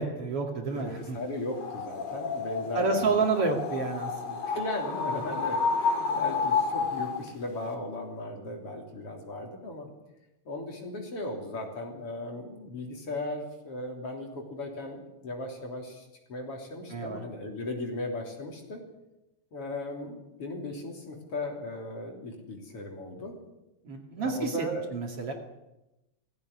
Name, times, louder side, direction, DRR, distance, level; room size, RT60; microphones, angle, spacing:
voice 1, 0.0-1.2 2.7-4.5 16.9-17.2 23.8-25.3, right 4 dB, 50° right, 3 dB, 3.1 m, -29 dB
voice 2, 0.7-3.1 4.5-9.9 10.5-18.8 19.5-23.3 24.2-24.8, left 2 dB, 50° left, 2 dB, 4.3 m, -37 dB
sound 1, 1.5-7.3, left 5 dB, 85° left, 3.9 m, -30 dB
18.5 x 15.5 x 9.9 m, 0.95 s
omnidirectional pair, 3.3 m